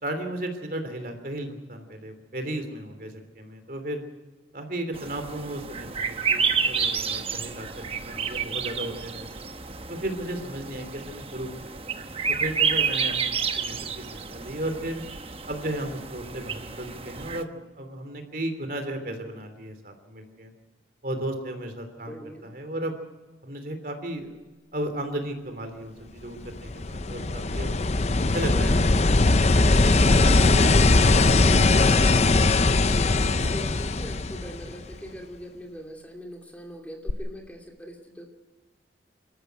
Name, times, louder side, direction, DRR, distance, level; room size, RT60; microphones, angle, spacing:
voice 1, 0.0-4.0 4.5-9.4 9.9-11.7 12.3-15.0 15.5-17.5 17.8-20.5 21.0-22.2 22.4-23.0 23.4-24.3 24.7-27.8 28.3-30.0, right 1 dB, 50° right, 6 dB, 3.1 m, -34 dB
sound 1, 4.9-17.4, right 6 dB, 30° right, 1.0 m, -30 dB
voice 2, 22.0-22.5 31.1-38.3, equal, 10° left, 1 dB, 2.6 m, -41 dB
sound 2, 26.5-34.9 37.1-37.2, left 3 dB, 35° left, 0.6 m, -20 dB
26.0 x 14.0 x 8.1 m, 1.2 s
head